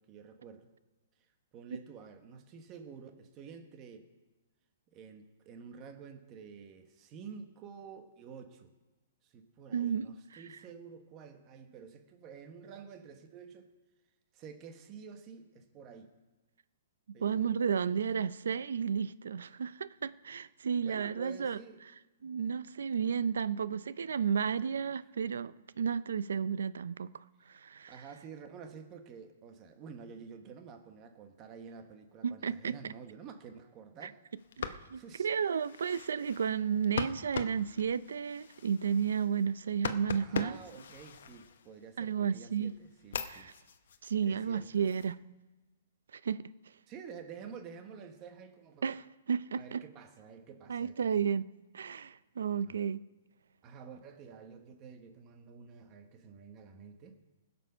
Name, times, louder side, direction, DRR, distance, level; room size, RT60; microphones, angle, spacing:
voice 1, 0.1-0.7 1.5-4.1 4.9-8.7 9.2-13.7 14.3-16.2 17.1-18.0 20.8-21.8 25.6-25.7 27.4-27.5 27.9-34.2 34.9-35.3 40.2-43.5 44.2-45.0 46.9-48.9 49.6-51.1 52.5-52.8 53.6-57.2, right 6 dB, 25° right, 1.1 m, -50 dB
voice 2, 9.7-10.0 17.2-21.6 22.2-27.1 27.5-28.0 32.2-32.7 34.0-34.1 34.6-40.6 42.0-42.7 43.3-43.5 44.0-45.1 46.1-46.4 48.8-49.8 50.7-51.5 51.7-53.0, right 7 dB, 90° right, 0.5 m, -32 dB
sound 1, 34.4-42.0 42.5-45.1, left 7 dB, 65° left, 0.9 m, -42 dB
20.0 x 6.9 x 5.5 m
hypercardioid pair, 170°, 0 cm